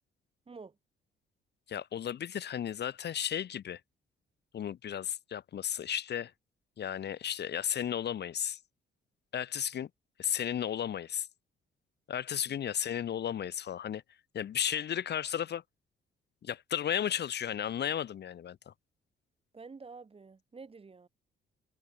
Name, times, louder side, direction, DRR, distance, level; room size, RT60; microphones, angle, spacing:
voice 1, 1.7-3.8 4.5-6.3 6.8-8.6 9.3-9.9 10.2-11.3 12.1-14.0 14.3-15.6 16.4-18.7, left 9 dB, 60° left, 1.5 m, -34 dB
voice 2, 19.5-21.1, right 4 dB, 30° right, 2.1 m, -49 dB
open air
cardioid pair, 90°, 20 cm